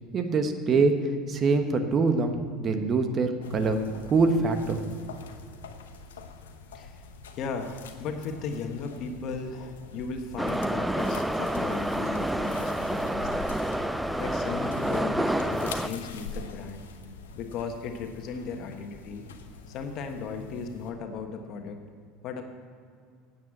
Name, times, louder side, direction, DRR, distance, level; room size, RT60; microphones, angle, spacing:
voice 1, 0.1-3.8 4.1-4.8, right 4 dB, 40° right, 7 dB, 1.2 m, -24 dB
sound 1, 3.4-20.9, left 4 dB, 85° left, 0.8 m, -44 dB
voice 2, 7.3-13.6 14.2-16.8 17.3-19.2 19.7-21.8 22.2-22.4, left 5 dB, 55° left, 5 dB, 1.4 m, -36 dB
Subway metro underground, 10.4-15.9, right 1 dB, 5° right, 0.5 m, -28 dB
9.4 x 7.9 x 7.7 m, 2.2 s
hypercardioid pair, 80°, 0 cm